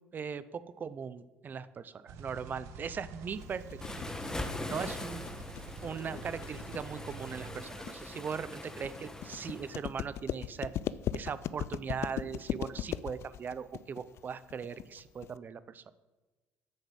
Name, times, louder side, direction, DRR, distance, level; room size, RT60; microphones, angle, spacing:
voice 1, 0.1-3.6 3.9-4.0 4.6-5.3 5.8-10.7 11.1-15.8, right 6 dB, 40° right, 15 dB, 0.5 m, -39 dB
sound 1, 2.1-7.6, right 4 dB, 75° right, 1.1 m, -48 dB
sound 2, 3.4-15.4, left 11 dB, 60° left, 0.4 m, -39 dB
Waves surf, 3.8-9.7, left 1 dB, 10° left, 1.1 m, -42 dB
8.5 x 6.7 x 7.7 m, 1.2 s
cardioid pair, 100°, 5 cm